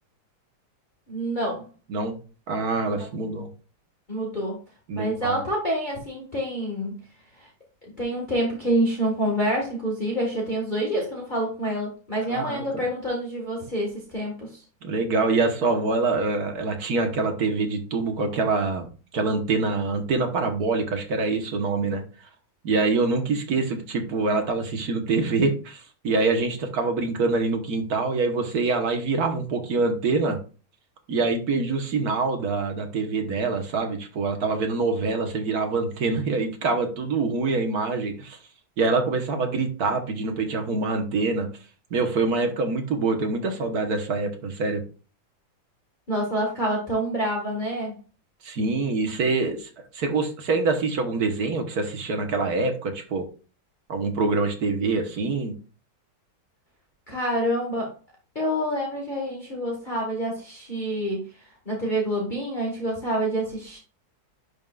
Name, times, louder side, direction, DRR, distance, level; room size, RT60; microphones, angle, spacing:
voice 1, 1.1-1.7 3.0-3.1 4.1-4.6 4.9-7.0 7.4-7.5 8.0-14.6 46.1-47.9 57.1-57.9 58.4-63.8, right 1 dB, 25° left, -3 dB, 1.8 m, -27 dB
voice 2, 2.5-3.5 4.9-5.4 12.3-12.8 14.8-18.9 19.1-22.0 22.6-30.4 31.1-38.4 38.8-41.5 41.9-44.8 48.4-53.3 53.9-55.5, right 3 dB, 60° right, 5 dB, 1.7 m, -25 dB
10.5 x 5.5 x 2.4 m, 0.36 s
omnidirectional pair, 1.9 m